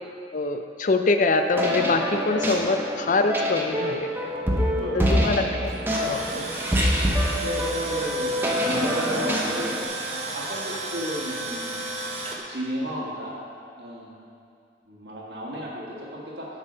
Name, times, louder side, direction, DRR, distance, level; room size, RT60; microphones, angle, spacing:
voice 1, 0.3-4.1 4.9-5.7 6.0-6.2, left 3 dB, 45° left, 7 dB, 0.5 m, -24 dB
sound 1, 1.5-9.8, equal, 10° right, 0.8 m, -26 dB
voice 2, 4.5-5.4 6.3-6.5 7.4-9.7 10.1-13.3 13.8-14.1 14.9-16.5, right 1 dB, 65° right, -4 dB, 1.7 m, -34 dB
Tools, 5.7-12.4, right 2 dB, 35° right, 0.9 m, -33 dB
8.2 x 5.4 x 5.5 m, 2.5 s
head